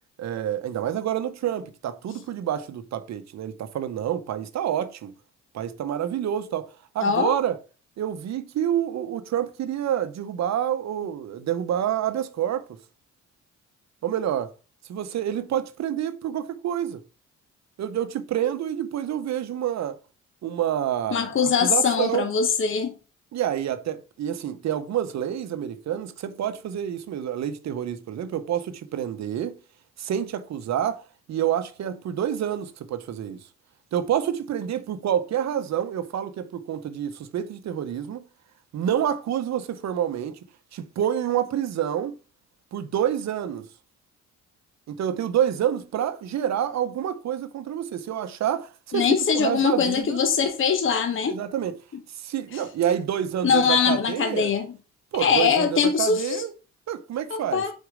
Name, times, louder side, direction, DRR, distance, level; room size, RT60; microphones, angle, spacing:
voice 1, 0.2-5.1 5.5-7.6 8.0-12.7 14.0-14.5 14.9-17.0 17.8-20.0 20.4-22.3 23.3-29.6 30.0-33.5 33.9-38.2 38.7-40.4 40.7-42.1 42.7-43.6 44.9-49.1 49.3-50.2 51.2-51.8 52.1-54.5 55.1-56.5 56.9-57.6, right 10 dB, 60° right, 0.8 m, -28 dB
voice 2, 7.0-7.4 21.1-23.0 48.9-51.4 52.5-52.6 53.4-54.7 55.2-56.4 57.3-57.7, left 6 dB, 45° left, 0.9 m, -22 dB
4.8 x 4.5 x 4.9 m
cardioid pair, 90°, 30 cm